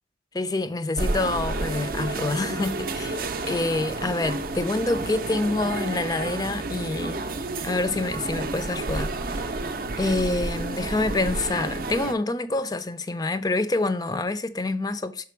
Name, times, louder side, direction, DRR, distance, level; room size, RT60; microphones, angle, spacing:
voice 1, 0.3-7.2 7.6-9.7 10.0-15.2, left 2 dB, 20° left, 0.4 m, -27 dB
sound 1, 1.0-12.1, right 3 dB, 50° right, 0.5 m, -30 dB
5.9 x 5.1 x 4.5 m
head